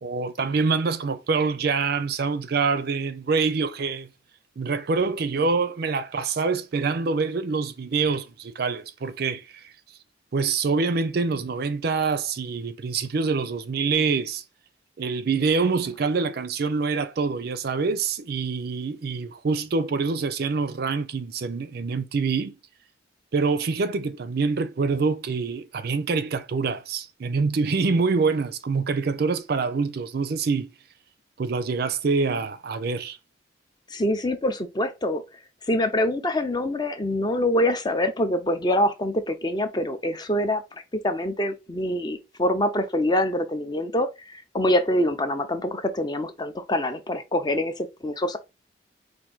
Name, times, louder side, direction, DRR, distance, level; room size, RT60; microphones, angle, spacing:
voice 1, 0.0-4.1 4.6-9.4 10.3-14.4 15.0-22.5 23.3-30.7 31.4-33.2, right 4 dB, 55° right, 0.4 m, -25 dB
voice 2, 33.9-35.2 35.7-40.6 41.0-48.4, left 1 dB, 20° left, 0.5 m, -25 dB
4.4 x 2.6 x 3.8 m
head